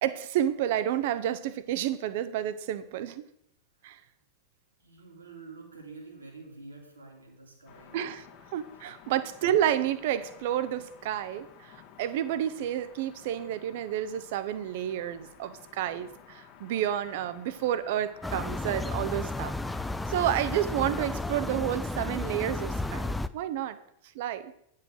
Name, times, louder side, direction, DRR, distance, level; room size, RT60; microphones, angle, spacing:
voice 1, 0.0-3.3 3.8-4.0 7.9-8.3 8.5-19.5 20.1-23.8 24.1-24.5, right 11 dB, 50° right, 14 dB, 0.7 m, -30 dB
voice 2, 4.8-8.0, right 3 dB, 75° right, 1 dB, 2.4 m, -48 dB
sound 1, 7.7-21.1, left 9 dB, 40° left, 1.5 m, -53 dB
sound 2, 18.2-23.3, left 2 dB, 5° left, 0.4 m, -33 dB
9.8 x 5.7 x 6.3 m, 0.75 s
figure-of-eight pair, 90°, 0 cm